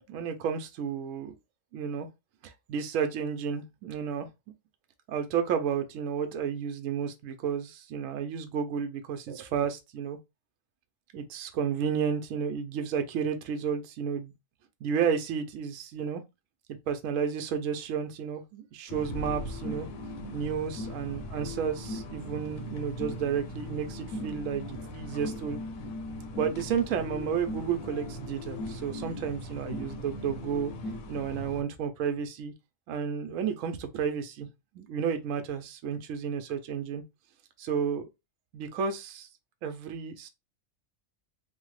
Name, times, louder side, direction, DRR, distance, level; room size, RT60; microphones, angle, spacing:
voice 1, 0.1-1.3 1.7-2.1 2.4-4.3 5.1-10.2 11.1-14.3 14.8-16.2 16.9-19.9 20.3-25.6 26.4-30.7 31.1-32.5 32.9-34.5 34.7-37.0 37.6-38.1 38.5-39.3 39.6-40.3, right 7 dB, 75° right, 0.9 m, -32 dB
sound 1, 18.9-31.6, left 1 dB, 85° left, 1.1 m, -39 dB
3.2 x 2.0 x 3.1 m
omnidirectional pair, 1.4 m